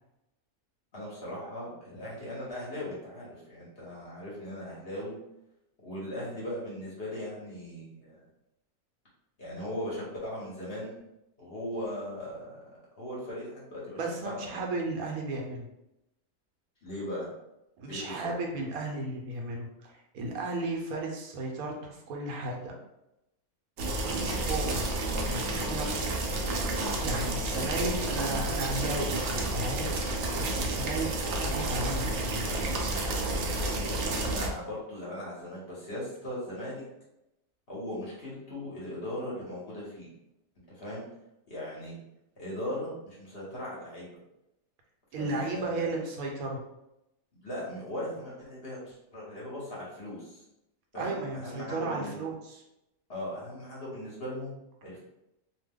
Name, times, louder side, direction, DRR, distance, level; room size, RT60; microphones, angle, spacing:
voice 1, 0.9-5.2 5.8-8.2 9.4-11.0 11.4-12.6 13.0-14.7 16.8-17.3 17.9-18.2 27.5-27.9 34.2-36.8 37.7-40.1 40.7-41.1 41.5-42.0 42.4-44.1 45.2-45.9 47.4-50.4 50.9-52.1 53.1-55.0, left 1 dB, 45° left, -6 dB, 1.1 m, -38 dB
voice 2, 14.0-15.6 17.8-19.7 20.1-22.7 23.8-24.8 25.2-26.1 27.0-30.0 30.4-31.1 31.4-32.5 45.1-46.6 51.0-52.6, right 2 dB, 80° right, 0 dB, 1.1 m, -34 dB
sound 1, 23.8-34.5, right 2 dB, 65° right, 0.8 m, -30 dB
2.8 x 2.1 x 3.4 m, 0.88 s
omnidirectional pair, 1.5 m